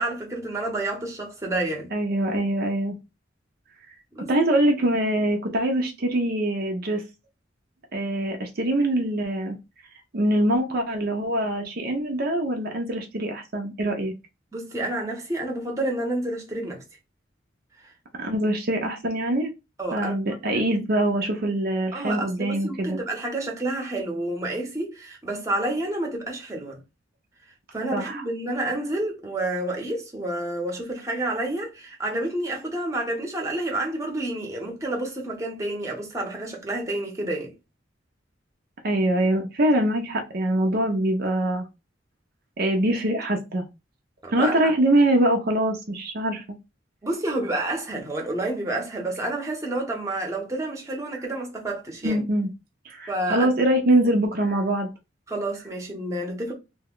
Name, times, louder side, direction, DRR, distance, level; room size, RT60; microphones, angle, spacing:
voice 1, 0.0-1.9 4.1-4.3 14.5-16.8 19.8-20.1 20.5-20.6 21.9-26.8 27.7-37.5 44.2-44.7 47.0-52.2 53.1-53.5 55.3-56.5, right 1 dB, 15° right, 0.9 m, -29 dB
voice 2, 1.9-3.0 4.3-7.0 7.9-9.6 10.1-14.1 18.2-19.5 19.9-23.0 27.9-28.2 38.8-41.7 42.6-43.7 44.3-46.4 52.0-52.5 52.8-54.9, right 1 dB, 55° right, 0.6 m, -23 dB
2.7 x 2.2 x 3.7 m
head